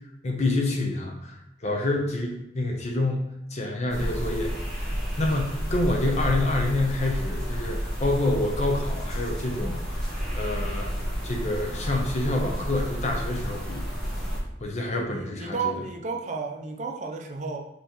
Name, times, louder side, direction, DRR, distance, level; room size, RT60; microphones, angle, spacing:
voice 1, 0.2-13.9 14.6-15.7, left 2 dB, 40° left, 2 dB, 0.7 m, -28 dB
sound 1, 3.9-14.4, equal, 5° left, 1.3 m, -30 dB
voice 2, 14.9-17.6, right 5 dB, 45° right, 2 dB, 0.5 m, -32 dB
5.6 x 3.0 x 3.0 m, 0.87 s
head